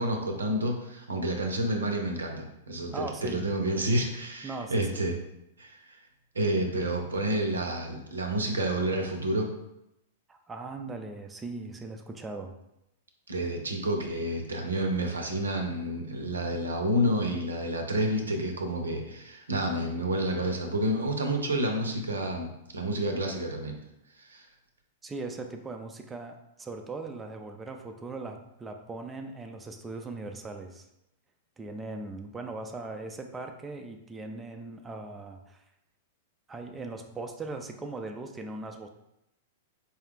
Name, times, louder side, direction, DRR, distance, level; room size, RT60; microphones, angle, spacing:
voice 1, 0.0-5.1 5.6-5.8 6.3-9.5 13.3-23.7 24.2-24.4, right 1 dB, 85° right, 3 dB, 0.7 m, -29 dB
voice 2, 2.9-3.5 4.4-5.1 10.3-12.5 25.0-30.9 31.6-35.6 36.5-38.9, right 3 dB, 15° right, 4 dB, 0.4 m, -39 dB
4.3 x 2.3 x 3.5 m, 0.85 s
hypercardioid pair, 105°, 0 cm